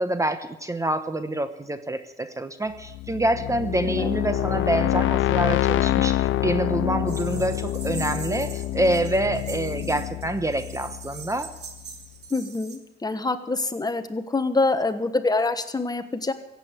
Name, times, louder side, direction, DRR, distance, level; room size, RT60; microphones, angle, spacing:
voice 1, 0.0-11.5, right 1 dB, 15° right, 10 dB, 0.9 m, -26 dB
sound 1, 2.8-11.6, left 14 dB, 80° left, 0.5 m, -26 dB
sound 2, 7.1-12.8, right 6 dB, 60° right, 2.2 m, -42 dB
voice 2, 12.3-16.3, left 3 dB, 20° left, 9 dB, 1.2 m, -25 dB
16.0 x 8.2 x 8.8 m, 0.94 s
cardioid pair, 90°, 20 cm